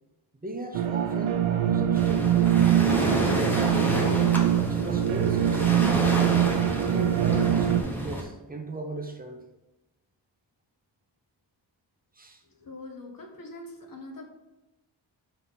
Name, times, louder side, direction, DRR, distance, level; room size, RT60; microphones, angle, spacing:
voice 1, 0.4-2.3 2.8-4.0 4.6-6.0 6.8-9.4 12.1-12.4, right 2 dB, 20° right, 4 dB, 0.8 m, -37 dB
sound 1, 0.7-7.8, right 11 dB, 85° right, 0.6 m, -23 dB
Waves surf, 1.9-8.2, equal, 5° left, 1.0 m, -29 dB
voice 2, 12.6-14.2, left 2 dB, 45° left, 2 dB, 1.2 m, -42 dB
4.5 x 4.0 x 5.7 m, 1.0 s
wide cardioid pair, 110°, 46 cm